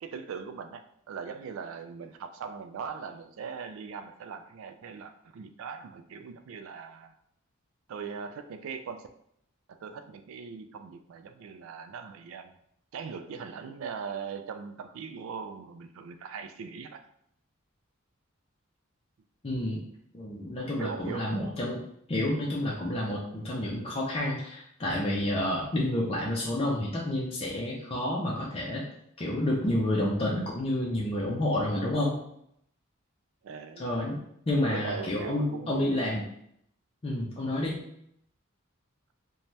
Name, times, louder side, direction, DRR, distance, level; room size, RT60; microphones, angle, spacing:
voice 1, 0.0-7.1 7.9-9.1 9.7-12.6 12.9-17.1 20.8-21.3 33.4-33.9 34.7-36.0, right 6 dB, 75° right, 8 dB, 0.3 m, -40 dB
voice 2, 19.4-19.8 20.1-21.8 22.1-28.8 29.2-32.2 33.8-34.2 34.5-36.2 37.0-37.8, left 1 dB, 30° left, -4 dB, 0.4 m, -29 dB
2.7 x 2.2 x 3.1 m, 0.72 s
head